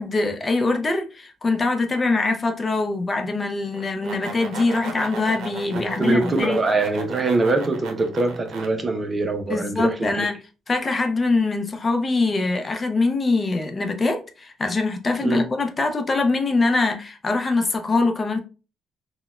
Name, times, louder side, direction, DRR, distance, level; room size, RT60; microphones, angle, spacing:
voice 1, 0.0-6.6 9.5-10.3 10.7-18.4, left 3 dB, 30° left, 0.5 m, -23 dB
sound 1, 3.7-8.7, right 3 dB, 80° right, 0.6 m, -36 dB
voice 2, 5.7-10.2 15.2-15.4, right 3 dB, 30° right, 0.6 m, -23 dB
3.9 x 2.2 x 2.4 m
cardioid pair, 90°, 0 cm